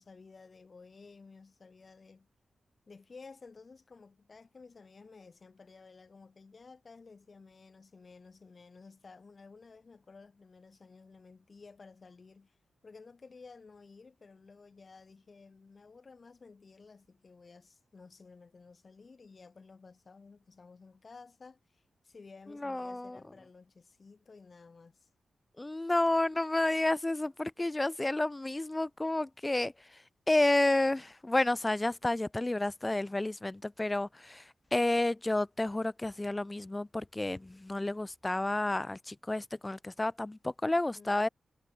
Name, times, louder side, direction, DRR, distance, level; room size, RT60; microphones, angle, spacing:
voice 1, 0.0-2.3 2.9-12.6 12.8-25.1 40.9-41.1, left 4 dB, 50° left, 3.1 m, -54 dB
voice 2, 22.5-23.2 25.6-29.7 30.3-41.3, left 2 dB, 20° left, 0.5 m, -30 dB
cardioid pair, 55°, 0 cm